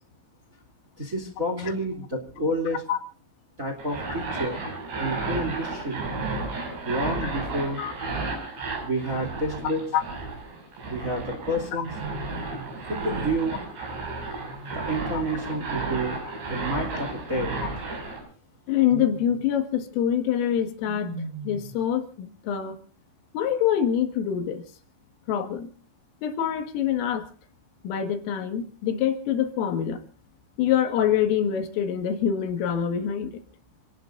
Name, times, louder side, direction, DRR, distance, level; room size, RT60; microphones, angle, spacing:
voice 1, 1.0-2.8 3.6-4.7 5.0-6.1 6.8-7.8 8.8-9.8 10.9-11.9 12.9-13.6 14.7-16.2 16.5-17.6, right 1 dB, 20° right, 4 dB, 2.3 m, -29 dB
sound 1, 3.8-18.2, right 3 dB, 55° right, 8.2 m, -33 dB
Wild animals, 4.4-4.8 6.0-6.7 9.1-10.0 11.7-12.8 14.3-15.3 16.8-17.9 18.7-19.5 20.8-21.8, right 2 dB, 75° right, 8.6 m, -41 dB
voice 2, 18.7-21.1 21.4-22.8 23.3-24.6 25.3-25.7 26.2-27.3 27.8-30.0 30.6-33.4, left 9 dB, 75° left, 7 dB, 4.3 m, -25 dB
28.0 x 18.5 x 2.6 m, 0.38 s
omnidirectional pair, 6.0 m